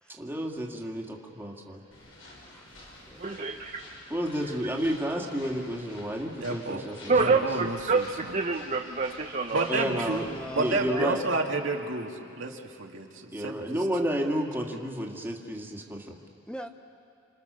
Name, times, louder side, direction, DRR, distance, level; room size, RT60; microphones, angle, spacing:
voice 1, 0.1-1.8 4.1-7.1 9.7-10.3 10.5-11.2 13.3-16.0, equal, 10° right, 0 dB, 2.2 m, -31 dB
sound 1, 1.9-10.9, left 1 dB, 85° left, 7.2 m, -49 dB
voice 2, 2.4-3.5 10.3-11.3 16.5-16.7, equal, 5° left, 6 dB, 0.7 m, -42 dB
voice 3, 3.2-3.8 7.1-8.0 8.3-9.9 11.0-11.1, right 4 dB, 40° right, 2 dB, 1.0 m, -27 dB
voice 4, 6.4-8.4 9.5-10.2 10.5-13.8, right 2 dB, 75° right, 1 dB, 2.2 m, -31 dB
28.0 x 28.0 x 6.9 m, 2.4 s
head